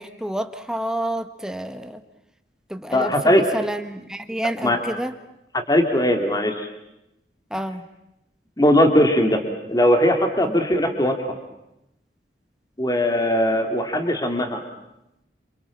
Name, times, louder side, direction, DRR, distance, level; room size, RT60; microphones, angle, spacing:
voice 1, 0.0-2.0 2.7-5.1 7.5-7.8 10.4-10.6, right 1 dB, 5° right, 9 dB, 1.5 m, -29 dB
voice 2, 2.9-3.4 4.6-4.8 5.7-6.7 8.6-9.4 9.7-11.2 12.8-14.6, left 1 dB, 20° left, 5 dB, 2.9 m, -19 dB
28.0 x 27.5 x 7.4 m, 0.86 s
head